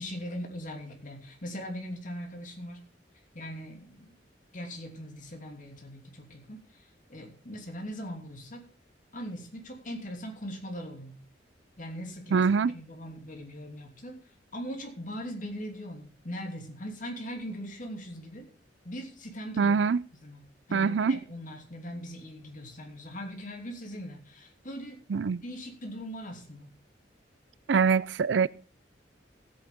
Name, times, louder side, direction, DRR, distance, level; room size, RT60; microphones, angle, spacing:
voice 1, 0.0-2.9 3.3-4.1 4.5-6.8 7.1-8.6 9.1-11.2 11.8-14.2 14.5-18.5 18.8-19.8 20.2-20.4 20.7-25.0 25.4-26.7, equal, 45° left, 3.0 m, -40 dB
voice 2, 12.3-12.8 19.6-20.0 20.7-21.2 25.1-25.4 27.7-28.5, right 5 dB, 75° right, 0.4 m, -24 dB
15.5 x 8.8 x 3.7 m
head